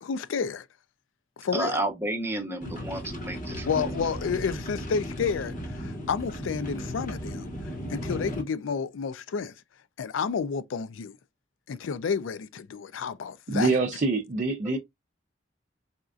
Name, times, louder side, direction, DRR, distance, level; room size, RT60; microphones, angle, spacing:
voice 1, 0.0-0.7 1.4-1.8 3.7-7.5 7.9-9.5 10.0-11.1 11.7-13.7, left 6 dB, 90° left, 0.4 m, -30 dB
voice 2, 1.5-3.9, right 2 dB, 15° right, 0.9 m, -31 dB
sound 1, 2.6-8.4, equal, 45° left, 1.2 m, -35 dB
voice 3, 13.5-14.8, right 3 dB, 40° right, 0.5 m, -25 dB
4.2 x 2.4 x 2.4 m
head